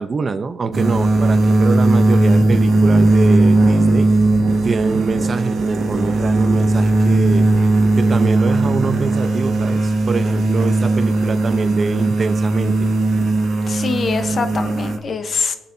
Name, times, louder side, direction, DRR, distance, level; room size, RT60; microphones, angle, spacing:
voice 1, 0.0-4.1 4.6-7.5 8.0-12.9, right 4 dB, 40° right, 12 dB, 0.6 m, -24 dB
sound 1, 0.7-15.0, right 2 dB, 60° right, 1.5 m, -17 dB
voice 2, 13.7-15.5, left 5 dB, 45° left, 9 dB, 0.9 m, -23 dB
21.5 x 7.4 x 2.7 m, 1.1 s
cardioid pair, 90°, 0 cm